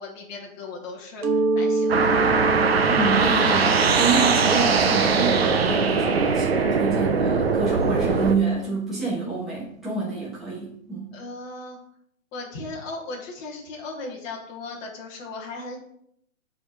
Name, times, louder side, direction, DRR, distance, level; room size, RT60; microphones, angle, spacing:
voice 1, 0.0-2.2 11.1-11.8 12.3-15.8, left 3 dB, 15° left, -3 dB, 1.3 m, -37 dB
Mallet percussion, 1.2-6.8, right 2 dB, 80° right, 1.4 m, -28 dB
sound 1, 1.9-8.3, right 5 dB, 45° right, 0.8 m, -21 dB
voice 2, 2.9-11.1, right 4 dB, ahead, -10 dB, 1.5 m, -28 dB
8.8 x 4.3 x 4.9 m, 0.70 s
hypercardioid pair, 165°, 41 cm